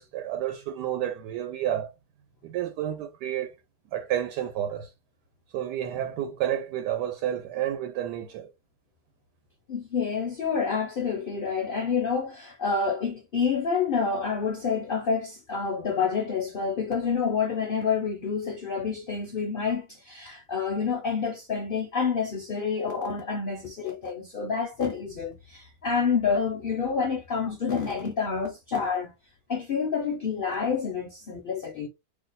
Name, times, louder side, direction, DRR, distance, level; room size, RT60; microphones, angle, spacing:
voice 1, 0.0-1.9 2.4-3.5 3.9-4.9 5.5-8.5, right 11 dB, 85° right, 1.2 m, -30 dB
voice 2, 9.7-29.1 29.5-31.9, left 5 dB, 65° left, 0.5 m, -28 dB
2.8 x 2.1 x 3.9 m
omnidirectional pair, 1.7 m